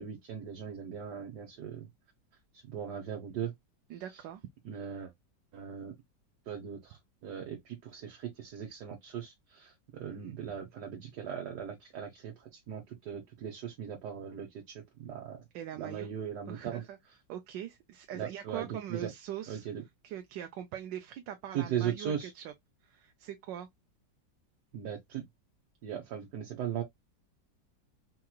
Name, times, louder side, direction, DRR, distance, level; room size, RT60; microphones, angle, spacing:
voice 1, 0.0-1.9 2.5-3.5 3.9-4.0 4.6-5.1 5.5-5.9 6.5-15.4 15.8-16.8 18.1-19.1 19.5-19.8 21.5-22.3 24.7-25.2 25.8-26.8, right 8 dB, 70° right, 1.5 m, -39 dB
voice 2, 3.9-4.4 10.1-10.4 15.5-16.1 16.5-17.0 17.3-19.7 20.0-22.5 22.8-23.7, right 10 dB, 85° right, 1.3 m, -42 dB
4.7 x 3.0 x 2.2 m
omnidirectional pair, 1.9 m